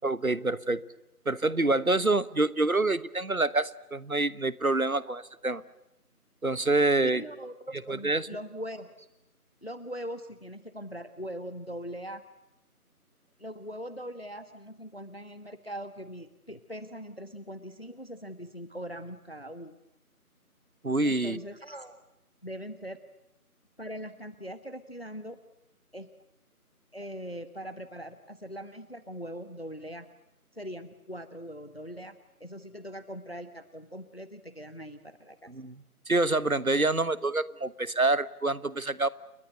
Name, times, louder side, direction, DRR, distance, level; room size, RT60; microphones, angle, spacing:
voice 1, 0.0-0.8 1.2-5.6 6.4-7.2 7.9-8.3 20.8-21.4 35.5-35.8 36.1-39.1, right 2 dB, 65° right, 18 dB, 1.3 m, -26 dB
voice 2, 7.0-9.1 9.6-12.2 13.4-19.8 21.0-22.0 22.4-23.0 23.8-25.4 25.9-26.1 26.9-30.1 30.5-35.5, equal, 40° left, 12 dB, 1.2 m, -41 dB
30.0 x 22.0 x 8.0 m, 0.87 s
figure-of-eight pair, 175°, 46 cm